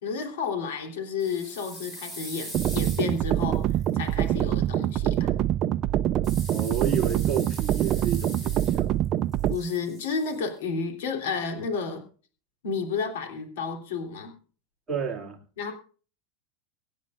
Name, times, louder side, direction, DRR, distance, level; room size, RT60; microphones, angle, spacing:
voice 1, 0.0-3.7 3.9-5.3 9.5-12.0 12.6-14.3 15.6-15.7, left 5 dB, 80° left, 3.3 m, -31 dB
sound 1, 1.2-4.2 6.2-9.1 9.3-10.4, equal, 10° left, 4.8 m, -42 dB
sound 2, 2.5-9.5, right 12 dB, 30° right, 0.5 m, -25 dB
voice 2, 6.5-9.1 14.9-15.4, right 7 dB, 15° right, 2.6 m, -31 dB
24.5 x 9.4 x 2.5 m
supercardioid pair, 170°, 0 cm